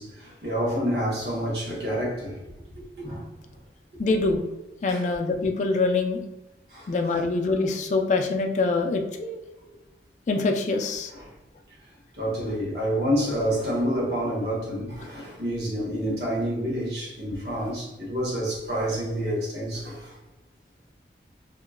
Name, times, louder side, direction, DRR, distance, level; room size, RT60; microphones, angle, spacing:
voice 1, 0.0-2.4 3.0-3.2 4.9-5.0 6.7-7.2 9.6-9.7 11.1-11.3 12.2-20.2, equal, 65° right, 1.3 m, -28 dB
voice 2, 4.0-4.4 4.8-6.2 6.9-9.4 10.3-11.1, left 3 dB, 40° left, 0.3 m, -24 dB
2.9 x 2.7 x 2.4 m
head